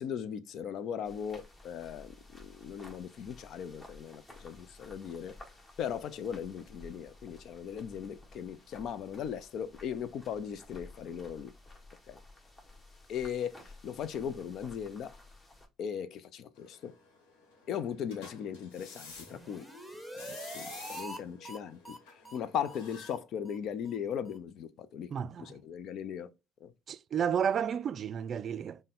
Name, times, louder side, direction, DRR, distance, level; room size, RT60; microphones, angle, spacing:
voice 1, 0.0-2.1 2.4-5.3 5.8-11.5 12.1-12.2 13.1-15.1 15.8-16.9 17.7-19.6 20.1-22.0 22.3-25.1 25.4-26.3 26.6-26.7, left 8 dB, 60° left, 0.4 m, -38 dB
sound 1, 1.0-15.7, left 2 dB, 30° left, 1.3 m, -54 dB
sound 2, 16.5-23.1, left 4 dB, 75° left, 1.2 m, -51 dB
sound 3, 19.2-21.2 21.4-21.6 21.8-22.0 22.2-22.4 22.6-22.8 23.0-23.2 23.5-23.6 23.9-24.0 24.3-24.4, right 1 dB, 5° left, 1.1 m, -44 dB
voice 2, 25.1-25.6 26.9-28.8, right 8 dB, 50° right, 0.3 m, -32 dB
5.3 x 2.2 x 3.6 m
hypercardioid pair, 60°, 0 cm